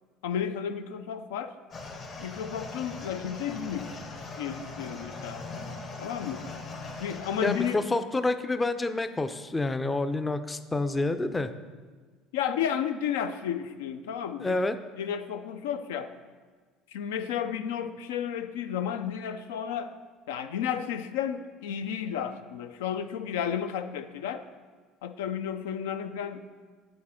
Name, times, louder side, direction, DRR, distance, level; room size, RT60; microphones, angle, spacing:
voice 1, 0.2-1.5 2.2-3.9 4.4-5.4 6.0-6.4 7.0-7.8 12.3-14.6 15.0-16.1 16.9-19.9 20.3-24.4 25.0-26.4, left 8 dB, 85° left, 9 dB, 0.4 m, -32 dB
sound 1, 1.7-7.7, left 3 dB, 45° left, 1.1 m, -40 dB
voice 2, 7.4-11.5 14.4-14.8, left 2 dB, 20° left, 10 dB, 0.4 m, -28 dB
8.4 x 4.2 x 4.3 m, 1.5 s
supercardioid pair, 85°, 0 cm